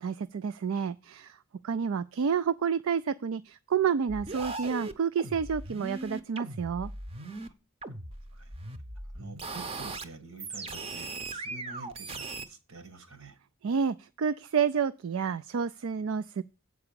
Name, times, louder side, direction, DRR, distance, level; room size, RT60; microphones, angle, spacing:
voice 1, 0.0-1.4 1.6-6.9 13.6-16.4, right 6 dB, 65° right, 0.4 m, -29 dB
sound 1, 4.1-7.5 7.8-10.0 10.4-12.5, right 2 dB, 30° right, 0.7 m, -39 dB
voice 2, 9.1-13.4, right 3 dB, 85° right, 1.8 m, -48 dB
8.1 x 4.8 x 6.8 m
head